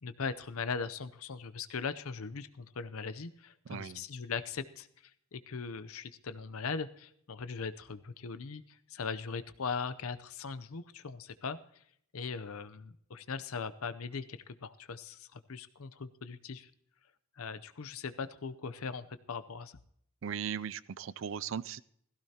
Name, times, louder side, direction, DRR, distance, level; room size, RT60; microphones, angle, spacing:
voice 1, 0.0-4.9 5.3-11.6 12.1-16.7 17.4-19.8, left 5 dB, 75° left, 12 dB, 0.7 m, -39 dB
voice 2, 3.7-4.0 20.2-21.8, right 7 dB, 60° right, 19 dB, 0.4 m, -38 dB
17.0 x 15.5 x 2.9 m, 0.69 s
head